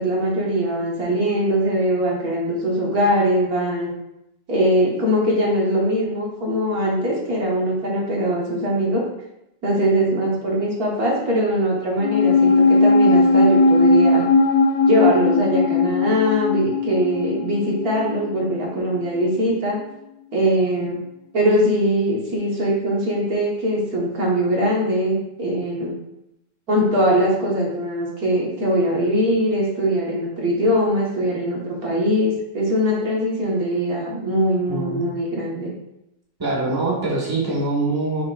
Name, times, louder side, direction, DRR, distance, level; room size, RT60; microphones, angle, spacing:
voice 1, 0.0-3.9 4.5-9.0 9.6-14.2 14.9-19.8 20.3-21.0 21.3-25.9 26.7-35.7, equal, 65° right, -4 dB, 1.9 m, -21 dB
sound 1, 12.0-18.6 18.8-18.9, left 3 dB, 65° left, 0.7 m, -18 dB
voice 2, 34.7-35.0 36.4-38.2, right 2 dB, 15° right, -4 dB, 1.5 m, -23 dB
9.5 x 4.2 x 2.4 m, 0.85 s
omnidirectional pair, 1.7 m